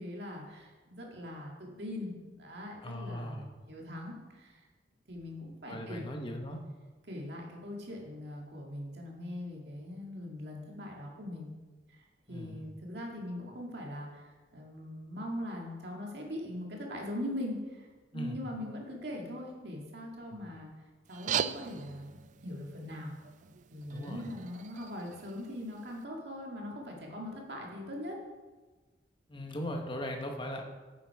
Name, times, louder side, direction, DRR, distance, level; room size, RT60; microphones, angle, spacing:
voice 1, 0.0-4.6 5.1-6.2 7.1-11.5 11.9-20.7 21.1-23.2 23.7-28.2, left 1 dB, 65° right, -1 dB, 2.1 m, -41 dB
voice 2, 2.8-3.5 5.7-6.6 12.3-12.6 18.1-18.4 23.9-24.2 29.3-30.6, equal, 30° left, 2 dB, 1.1 m, -38 dB
sound 1, 21.1-26.0, right 8 dB, 45° right, 0.3 m, -40 dB
9.8 x 7.5 x 4.8 m, 1.3 s
head